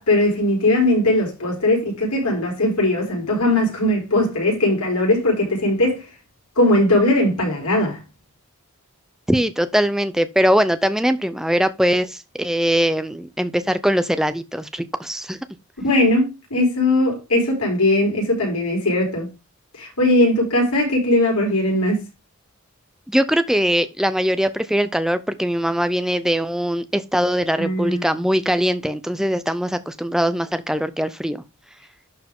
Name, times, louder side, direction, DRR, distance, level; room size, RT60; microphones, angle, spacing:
voice 1, 0.0-6.0 6.6-8.0 15.8-19.3 19.8-22.0 27.6-28.1, left 1 dB, 90° left, 5.6 m, -19 dB
voice 2, 9.3-15.4 23.1-31.4, equal, ahead, 0.5 m, -21 dB
11.5 x 4.7 x 3.7 m
head